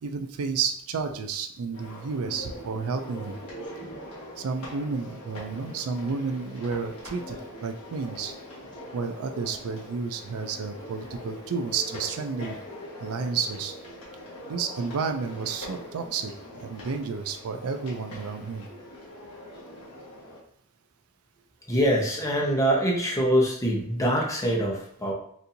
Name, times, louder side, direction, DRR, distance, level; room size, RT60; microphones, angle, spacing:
voice 1, 0.0-3.4 4.4-8.3 8.9-12.6 13.0-13.7 14.5-16.3 16.6-18.7, right 5 dB, 70° right, 6 dB, 0.4 m, -31 dB
sound 1, 1.7-20.4, left 1 dB, 85° left, 1.4 m, -42 dB
voice 2, 21.7-25.1, equal, 15° left, -2 dB, 0.8 m, -24 dB
4.1 x 2.6 x 2.6 m, 0.66 s
head